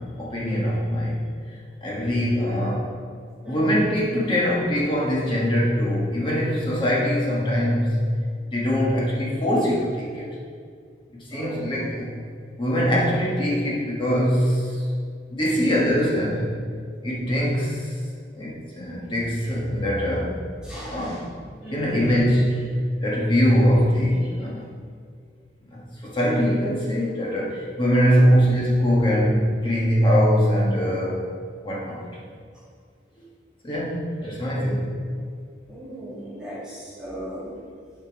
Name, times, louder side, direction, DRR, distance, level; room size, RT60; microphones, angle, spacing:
voice 1, 0.0-1.3 1.8-2.9 3.4-8.0 8.5-10.4 11.3-12.2 12.6-14.8 15.3-16.5 17.0-17.9 18.3-20.4 20.9-21.4 21.7-22.6 23.0-24.6 25.7-31.3 31.6-32.0 33.6-34.8, equal, 25° left, -5 dB, 1.3 m, -22 dB
voice 2, 3.4-3.8 11.3-11.6 15.6-15.7 20.6-21.2 21.6-22.0 34.5-34.8 35.7-37.5, right 1 dB, 5° right, -11 dB, 2.2 m, -37 dB
7.3 x 5.2 x 5.1 m, 2.1 s
head